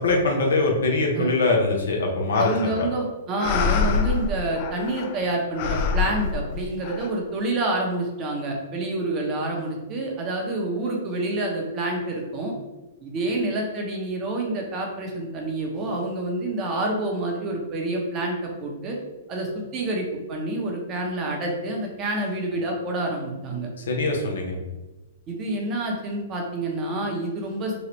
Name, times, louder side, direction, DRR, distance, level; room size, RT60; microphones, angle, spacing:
voice 1, 0.0-2.9 23.9-24.6, left 3 dB, 75° left, 0 dB, 0.7 m, -22 dB
sound 1, 2.3-3.0 3.4-5.2 5.5-7.1, left 5 dB, 50° left, 0.3 m, -26 dB
voice 2, 2.4-12.5 13.0-19.0 19.3-23.7 25.3-27.8, right 2 dB, 30° right, 0 dB, 0.8 m, -28 dB
3.1 x 2.4 x 3.0 m, 1.1 s
hypercardioid pair, 120°, 0 cm